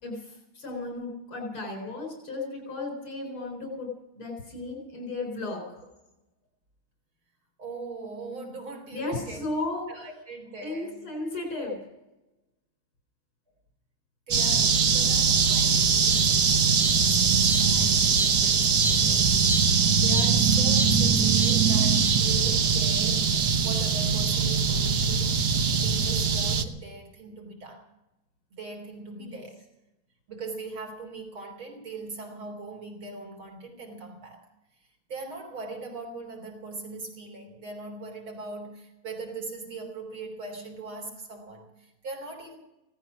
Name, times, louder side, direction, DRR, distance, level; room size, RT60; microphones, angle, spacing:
voice 1, 0.0-3.9 4.2-5.8 8.9-9.9 10.6-11.8 18.8-19.5 29.2-29.4, left 2 dB, 85° left, 1 dB, 5.3 m, -35 dB
voice 2, 7.6-9.4 9.9-11.1 14.3-19.5 20.0-23.3 23.6-27.8 28.5-29.6 30.3-34.5 35.1-42.6, right 3 dB, 75° right, 2 dB, 4.2 m, -40 dB
sound 1, 14.3-26.6, right 5 dB, 55° right, 1.5 m, -22 dB
17.5 x 13.5 x 6.0 m, 0.94 s
omnidirectional pair, 2.3 m